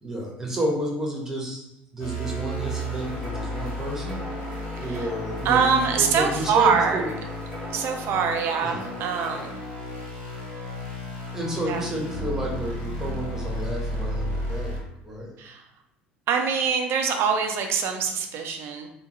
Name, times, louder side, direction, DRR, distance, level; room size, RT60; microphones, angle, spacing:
voice 1, 0.0-1.7 1.9-4.2 4.7-7.1 8.6-8.9 11.3-14.7 15.0-15.3, right 1 dB, 10° right, -3 dB, 1.2 m, -31 dB
sound 1, 2.0-14.8, left 1 dB, 65° left, 1.0 m, -33 dB
sound 2, 2.6-9.4, equal, 10° left, 1.4 m, -40 dB
voice 2, 5.4-7.0 7.7-9.6 11.7-11.8 15.4-15.6 16.3-18.9, right 6 dB, 50° right, 4 dB, 0.5 m, -24 dB
3.7 x 2.1 x 3.0 m, 0.82 s
hypercardioid pair, 65°, 5 cm